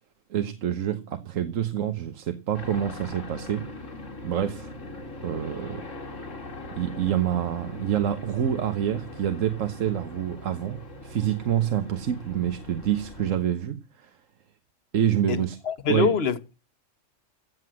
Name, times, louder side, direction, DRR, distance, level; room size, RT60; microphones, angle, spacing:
voice 1, 0.3-3.7 4.2-4.7 5.2-5.8 6.7-14.2 14.9-15.6 15.9-16.1, right 10 dB, 90° right, 1.3 m, -27 dB
sound 1, 2.5-13.3, left 2 dB, 75° left, 2.3 m, -41 dB
voice 2, 15.3-16.5, left 7 dB, 55° left, 1.2 m, -26 dB
15.5 x 7.8 x 6.2 m
omnidirectional pair, 1.3 m